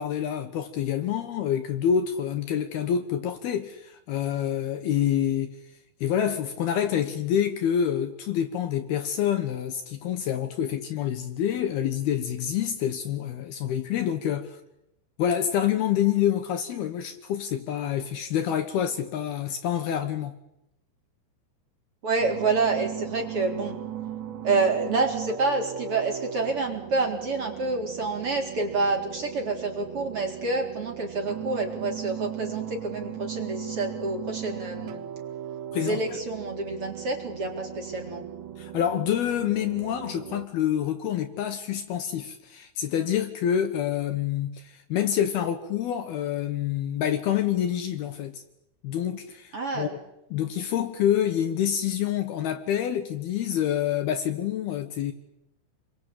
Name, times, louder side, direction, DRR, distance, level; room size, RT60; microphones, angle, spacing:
voice 1, 0.0-5.5 6.0-14.6 15.2-20.4 35.7-36.2 38.6-48.4 48.8-50.0 50.3-55.1, left 9 dB, 70° left, 2.9 m, -27 dB
voice 2, 22.0-23.8 24.4-35.0 35.8-38.2 49.5-50.0, right 3 dB, 30° right, 4.4 m, -28 dB
sound 1, 22.2-40.5, right 10 dB, 75° right, 3.7 m, -38 dB
29.5 x 22.5 x 8.7 m
omnidirectional pair, 5.2 m